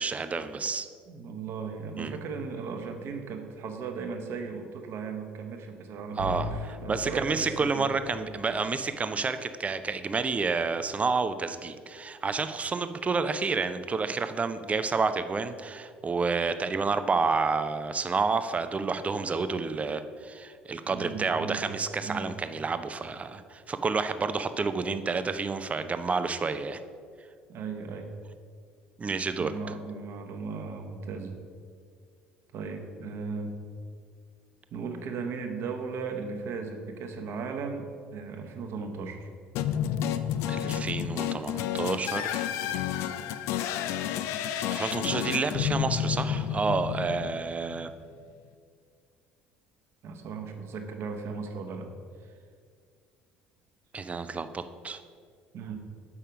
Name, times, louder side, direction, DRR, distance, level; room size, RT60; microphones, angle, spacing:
voice 1, 0.0-0.9 2.0-2.2 6.2-26.8 29.0-29.5 40.5-42.5 43.6-43.8 44.7-47.9 53.9-55.0, right 4 dB, 25° right, 11 dB, 0.5 m, -29 dB
voice 2, 1.1-7.8 20.9-21.6 22.0-22.3 27.5-28.1 29.0-31.4 32.5-33.6 34.7-39.3 50.0-51.9 52.2-52.3 55.5-55.9, right 5 dB, 50° right, 4 dB, 1.0 m, -37 dB
Bowed string instrument, 6.2-9.2, left 2 dB, 90° right, 1.2 m, -39 dB
sound 1, 39.6-47.8, left 10 dB, 60° left, 0.4 m, -30 dB
7.2 x 5.5 x 5.0 m, 2.1 s
figure-of-eight pair, 60°, 5 cm